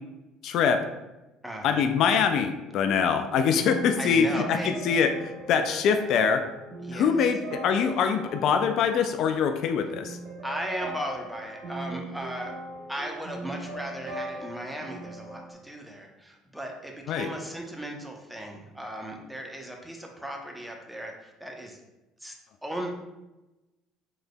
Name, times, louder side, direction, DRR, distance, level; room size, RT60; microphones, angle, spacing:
voice 1, 0.4-0.8 1.6-6.4 6.9-10.2 17.1-17.3, left 6 dB, 60° left, 8 dB, 0.3 m, -24 dB
voice 2, 1.4-1.8 4.0-4.7 6.8-7.1 10.4-12.5 12.9-21.8 22.2-22.3 22.6-22.9, right 1 dB, 5° right, 1 dB, 0.8 m, -36 dB
sound 1, 3.4-15.5, right 1 dB, 50° right, 1.0 m, -40 dB
4.8 x 3.9 x 2.2 m, 1.0 s
hypercardioid pair, 60°, 0 cm